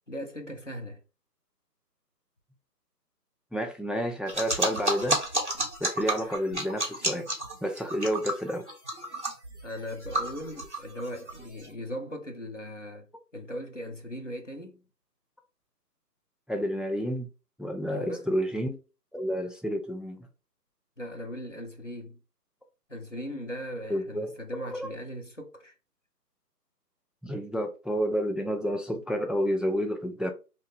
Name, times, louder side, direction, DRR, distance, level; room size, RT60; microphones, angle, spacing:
voice 1, 0.1-1.0 5.6-5.7 6.2-6.4 9.6-13.1 13.3-14.9 17.9-18.3 21.0-22.2 22.9-25.7, equal, 50° left, 0.6 m, -39 dB
voice 2, 3.5-5.2 5.8-7.3 7.6-8.6 16.5-17.3 17.6-18.8 19.1-20.3 23.9-24.3 24.7-24.8 27.2-30.3, equal, ahead, 0.3 m, -30 dB
sound 1, 4.3-11.7, right 1 dB, 45° right, 0.7 m, -31 dB
2.7 x 2.1 x 3.2 m
figure-of-eight pair, 180°, 50 cm